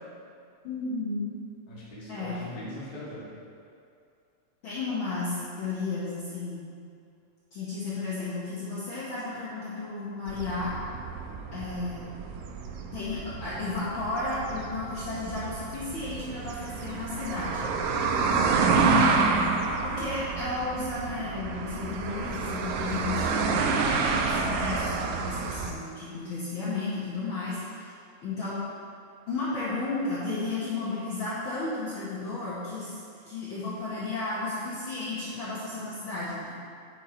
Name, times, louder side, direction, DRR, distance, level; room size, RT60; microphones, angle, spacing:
voice 1, 0.6-1.3 2.1-2.4 4.6-6.7 7.5-10.7 11.5-12.1 12.9-17.6 19.8-23.8 24.3-27.9 28.2-28.6 29.3-33.0 33.3-36.5, left 3 dB, 55° left, -9 dB, 1.6 m, -33 dB
voice 2, 1.7-3.3 18.2-18.8, equal, 20° left, -8 dB, 1.3 m, -40 dB
sound 1, 10.3-25.7, right 4 dB, 85° right, 2.0 m, -29 dB
8.9 x 5.9 x 3.9 m, 2.5 s
omnidirectional pair, 3.4 m